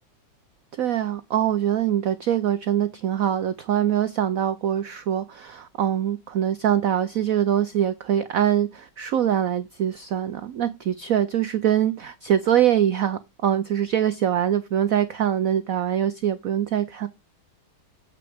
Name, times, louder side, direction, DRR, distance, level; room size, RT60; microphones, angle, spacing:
voice 1, 0.8-17.1, right 10 dB, 85° right, 0.7 m, -23 dB
8.1 x 6.0 x 3.5 m
omnidirectional pair, 2.2 m